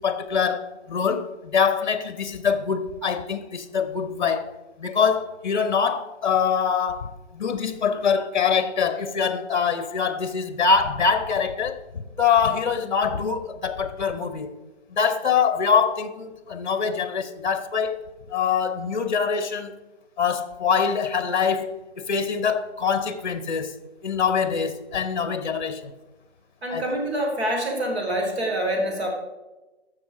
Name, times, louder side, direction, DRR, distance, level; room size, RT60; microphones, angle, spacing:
voice 1, 0.0-4.5 4.8-14.5 14.9-18.0 18.3-19.7 20.2-23.8 24.0-25.9 26.7-26.9, left 6 dB, 45° left, 1.0 m, -24 dB
voice 2, 26.6-29.1, right 1 dB, 70° right, 3.5 m, -26 dB
14.0 x 6.6 x 4.9 m
hypercardioid pair, 180°, 33 cm